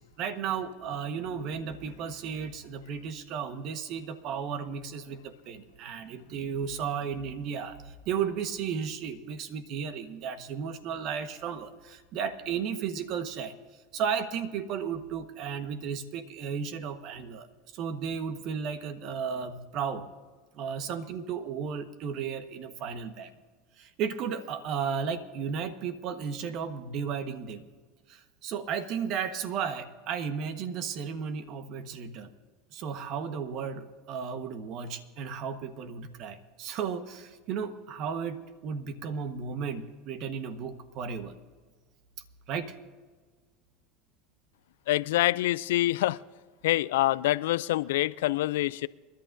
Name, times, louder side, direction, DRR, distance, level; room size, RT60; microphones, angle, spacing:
voice 1, 0.0-13.6 13.9-17.5 17.7-20.1 20.5-23.3 23.8-27.6 28.1-32.3 32.7-41.3 42.5-42.7, right 7 dB, 55° right, 1.3 m, -34 dB
voice 2, 44.9-46.2 46.6-48.9, left 16 dB, 80° left, 0.3 m, -26 dB
28.5 x 11.5 x 2.7 m
hypercardioid pair, 95°, 0 cm